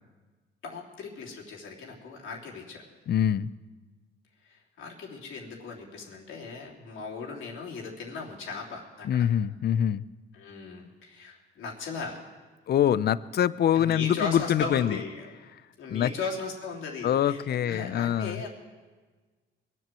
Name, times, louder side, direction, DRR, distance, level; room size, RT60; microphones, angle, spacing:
voice 1, 0.6-2.8 4.4-9.2 10.3-12.2 13.7-15.3 15.8-18.5, left 4 dB, 80° left, -2 dB, 3.2 m, -37 dB
voice 2, 3.1-3.5 9.0-10.0 12.7-15.0 15.9-16.1 17.0-18.4, left 10 dB, 55° left, 17 dB, 0.5 m, -24 dB
21.5 x 7.6 x 7.5 m, 1.4 s
cardioid pair, 90°, 20 cm